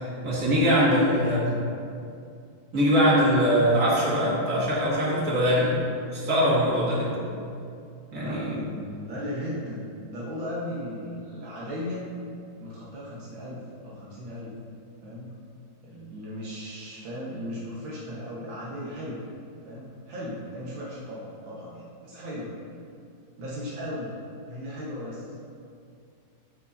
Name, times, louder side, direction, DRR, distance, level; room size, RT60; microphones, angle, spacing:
voice 1, 0.2-1.4 2.7-5.7 6.1-7.2 8.1-8.5, equal, 50° right, -7 dB, 2.5 m, -22 dB
voice 2, 1.0-1.6 8.1-9.8 10.1-12.0 12.6-13.6 13.8-14.5 15.0-15.4 15.8-19.2 19.6-22.5 23.4-24.2 24.5-25.4, equal, 80° right, -7 dB, 2.2 m, -36 dB
13.0 x 6.2 x 2.8 m, 2.4 s
omnidirectional pair, 2.1 m